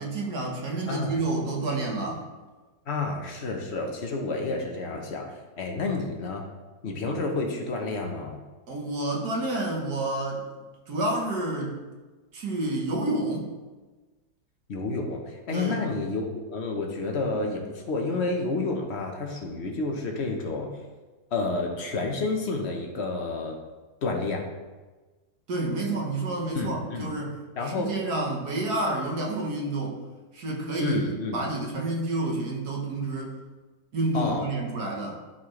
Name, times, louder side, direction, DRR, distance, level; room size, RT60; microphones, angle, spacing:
voice 1, 0.0-2.2 8.7-10.4 10.9-11.7 12.3-13.5 15.5-15.8 25.5-27.3 27.6-30.0 30.3-33.4 33.9-35.2, right 2 dB, 65° right, -1 dB, 1.7 m, -29 dB
voice 2, 2.9-5.3 5.6-6.4 6.8-8.4 14.7-20.7 21.3-23.6 24.0-24.4 26.5-27.1 27.6-27.9 30.8-31.4 34.1-34.5, left 3 dB, 45° left, 2 dB, 1.1 m, -30 dB
12.0 x 4.4 x 3.2 m, 1.2 s
omnidirectional pair, 1.8 m